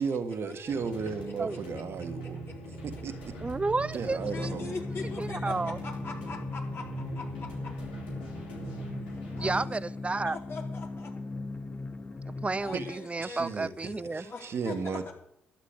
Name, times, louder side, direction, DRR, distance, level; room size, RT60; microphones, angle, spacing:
voice 1, 0.0-2.4 2.8-3.3 3.9-4.7 12.7-12.9 13.2-13.7 14.1-15.1, right 5 dB, 55° right, 7 dB, 1.7 m, -34 dB
sound 1, 0.7-9.7, right 2 dB, 85° left, 3.6 m, -42 dB
voice 2, 2.2-2.5 4.2-7.7 9.1-9.8 10.2-11.1 12.6-14.8 15.1-15.2, left 4 dB, 50° left, 0 dB, 4.2 m, -42 dB
voice 3, 3.4-4.5 5.2-5.8 9.4-10.4 12.3-14.3, right 3 dB, 25° right, 19 dB, 0.7 m, -31 dB
sound 2, 4.2-12.9, left 3 dB, 30° left, 1.5 m, -38 dB
12.0 x 8.7 x 8.2 m, 0.73 s
hypercardioid pair, 45°, 5 cm